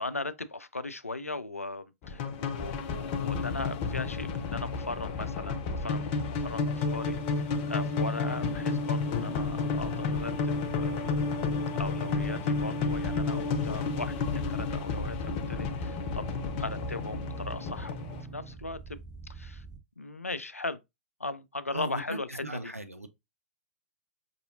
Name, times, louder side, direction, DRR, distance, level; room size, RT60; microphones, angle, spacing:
voice 1, 0.0-16.3 16.6-17.9 18.3-19.0 19.3-19.6 20.0-20.8 21.2-22.7, left 3 dB, 85° left, 0.4 m, -38 dB
sound 1, 2.0-18.2, left 4 dB, 35° left, 0.6 m, -31 dB
sound 2, 6.1-19.8, right 3 dB, 5° right, 0.6 m, -45 dB
voice 2, 21.7-23.1, right 1 dB, 90° right, 0.5 m, -38 dB
5.1 x 2.7 x 2.6 m
figure-of-eight pair, 110°, 7 cm